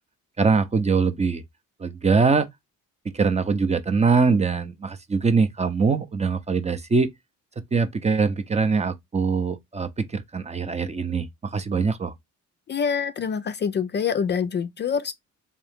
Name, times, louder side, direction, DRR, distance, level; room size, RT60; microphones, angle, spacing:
voice 1, 0.4-1.4 1.8-2.5 3.0-7.1 7.7-12.1, right 4 dB, 20° right, 0.6 m, -23 dB
voice 2, 12.7-15.1, left 6 dB, 35° left, 0.4 m, -25 dB
3.7 x 2.8 x 3.4 m
cardioid pair, 90°, 30 cm